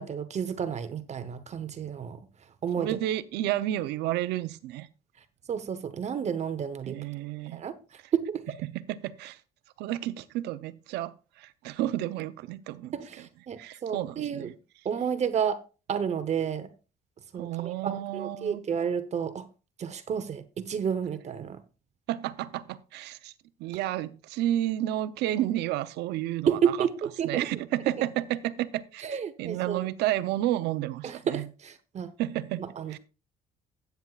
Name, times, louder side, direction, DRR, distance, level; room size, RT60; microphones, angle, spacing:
voice 1, 0.0-2.2 2.6-3.0 5.5-7.0 7.5-7.8 8.1-8.5 12.9-14.5 14.8-15.6 15.9-16.7 17.3-19.5 19.8-21.6 26.5-27.5 29.0-29.8 31.0-32.1 32.8-33.0, right 7 dB, 40° right, 0.9 m, -31 dB
voice 2, 2.8-4.9 6.9-7.6 8.6-9.4 9.8-13.0 13.6-14.5 17.3-18.6 22.1-23.3 23.6-26.8 27.2-31.5 32.2-33.0, right 13 dB, 85° right, 0.7 m, -31 dB
13.5 x 9.2 x 2.4 m
cardioid pair, 110°, 17 cm